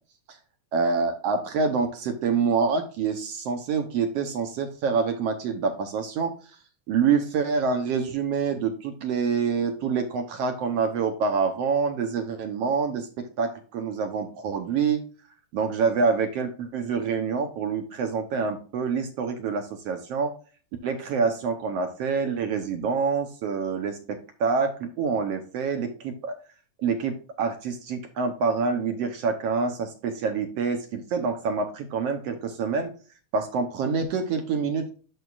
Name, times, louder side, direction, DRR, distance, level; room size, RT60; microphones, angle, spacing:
voice 1, 0.7-6.3 6.9-15.0 15.5-20.3 20.8-26.3 26.8-32.9 33.3-34.9, right 5 dB, 65° right, 6 dB, 1.7 m, -26 dB
12.5 x 5.0 x 2.4 m, 0.37 s
omnidirectional pair, 3.6 m